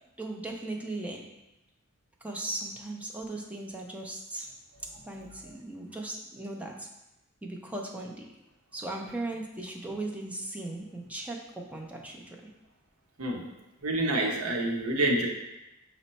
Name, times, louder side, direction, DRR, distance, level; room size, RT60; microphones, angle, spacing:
voice 1, 0.2-1.3 2.2-4.5 5.1-6.9 7.4-8.3 8.7-12.4, right 2 dB, 5° right, -1 dB, 0.5 m, -37 dB
voice 2, 13.8-15.3, right 1 dB, 80° right, 0 dB, 0.7 m, -27 dB
5.3 x 2.1 x 4.0 m, 0.95 s
head